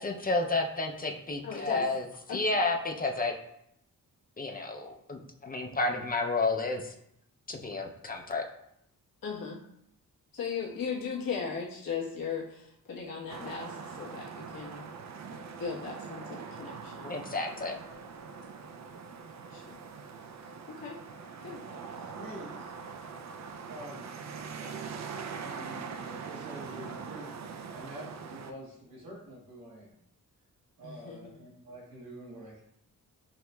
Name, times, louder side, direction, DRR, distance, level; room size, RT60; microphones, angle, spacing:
voice 1, 0.0-2.0 2.3-3.4 4.4-6.9 7.5-8.4 17.0-17.8, left 3 dB, 25° left, 2 dB, 0.5 m, -31 dB
voice 2, 1.4-1.8 2.3-2.4 9.2-9.6 10.3-14.9 15.3-17.2 19.5-19.8 20.7-21.0 21.4-21.6 30.8-31.4, left 6 dB, 90° left, -4 dB, 1.1 m, -37 dB
sound 1, 13.3-28.5, right 5 dB, 55° right, 0.4 m, -42 dB
voice 3, 22.1-22.7 23.6-24.1 25.1-27.3 27.7-29.9 30.8-32.6, right 1 dB, 80° right, -5 dB, 1.6 m, -47 dB
6.2 x 2.9 x 2.2 m, 0.75 s
cardioid pair, 80°, 34 cm